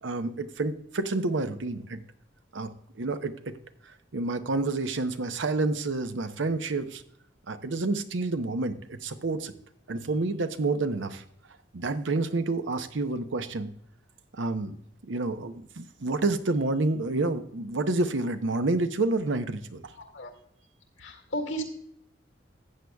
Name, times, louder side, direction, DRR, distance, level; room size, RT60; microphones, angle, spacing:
voice 1, 0.0-2.0 2.5-3.6 4.1-7.0 7.5-9.5 9.9-11.2 11.7-13.7 14.3-14.8 15.0-19.9, right 2 dB, 85° right, 10 dB, 0.8 m, -29 dB
voice 2, 19.9-20.3 21.0-21.6, right 1 dB, 80° left, 3 dB, 2.0 m, -34 dB
14.0 x 8.4 x 2.3 m, 0.72 s
head